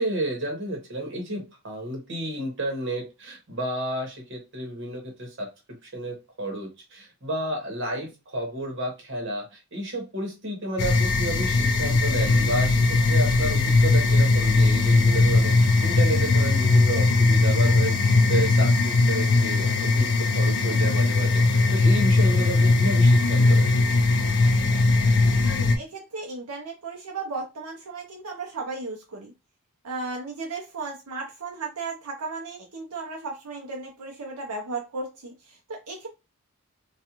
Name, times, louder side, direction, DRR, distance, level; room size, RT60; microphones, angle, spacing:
voice 1, 0.0-5.5 5.8-21.4 21.7-23.6, right 1 dB, 55° right, 1.0 m, -31 dB
sound 1, 10.8-25.8, left 3 dB, 50° left, 0.3 m, -20 dB
voice 2, 25.2-29.3 29.8-36.1, right 3 dB, 85° right, 0.6 m, -35 dB
2.4 x 2.3 x 2.9 m
head